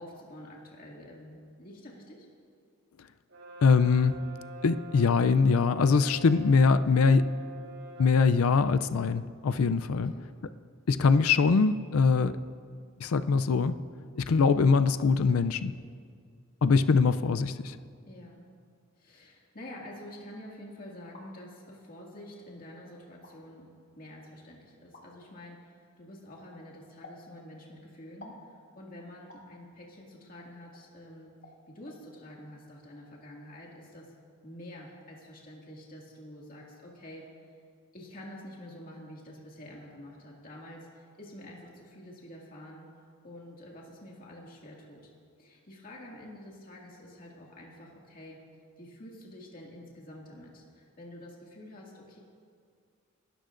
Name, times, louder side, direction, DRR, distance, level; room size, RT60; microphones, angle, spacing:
voice 1, 0.0-2.3 10.1-10.2 18.1-18.4 19.0-23.7 24.0-31.3 31.7-34.1 34.4-37.4 37.9-45.1 45.4-48.4 48.8-52.2, left 1 dB, 45° left, -3 dB, 2.2 m, -48 dB
Brass instrument, 3.3-8.2, right 2 dB, 75° right, 3.5 m, -45 dB
voice 2, 3.6-4.2 4.6-7.3 8.0-10.1 10.9-12.3 13.0-13.8 14.2-15.7 16.6-17.8, left 5 dB, 80° left, 12 dB, 0.5 m, -23 dB
sound 1, 20.9-21.3 22.2-22.3 23.1-23.3 24.9-25.1 27.0-27.2 28.2-28.5 29.3-29.5 30.7-30.9 31.4-31.6 31.9-32.0, left 2 dB, 60° left, 2.5 m, -50 dB
26.5 x 13.0 x 2.6 m, 2.2 s
head